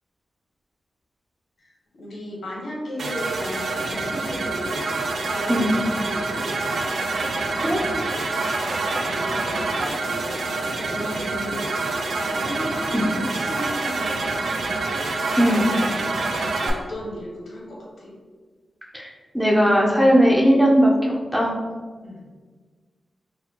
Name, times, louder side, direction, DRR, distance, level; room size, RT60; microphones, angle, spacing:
voice 1, 1.9-4.9 5.3-6.9 8.7-14.6 15.3-16.0 16.6-18.1 22.0-22.2, left 1 dB, 80° left, -4 dB, 1.1 m, -36 dB
sound 1, 3.0-16.7, right 3 dB, 70° right, 0.4 m, -26 dB
voice 2, 15.4-15.7 18.9-21.5, equal, 5° right, -3 dB, 0.4 m, -18 dB
4.1 x 2.2 x 2.8 m, 1.4 s
wide cardioid pair, 160°, 0 cm